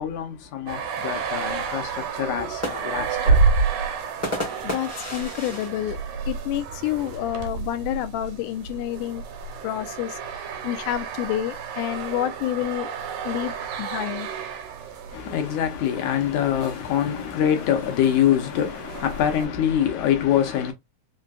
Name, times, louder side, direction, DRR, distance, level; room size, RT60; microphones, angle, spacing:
voice 1, 0.0-3.6 15.1-20.7, left 10 dB, 70° left, 2.2 m, -24 dB
sound 1, 0.7-19.5, right 5 dB, 85° right, 2.4 m, -30 dB
sound 2, 2.3-7.0 7.4-7.5 7.7-8.2 9.1-10.6, left 1 dB, 20° left, 0.4 m, -35 dB
voice 2, 4.6-6.0 6.3-9.2 9.6-10.2 10.6-12.9 13.2-13.5 13.8-14.3, left 13 dB, 90° left, 2.2 m, -28 dB
5.5 x 2.5 x 2.4 m
omnidirectional pair, 3.6 m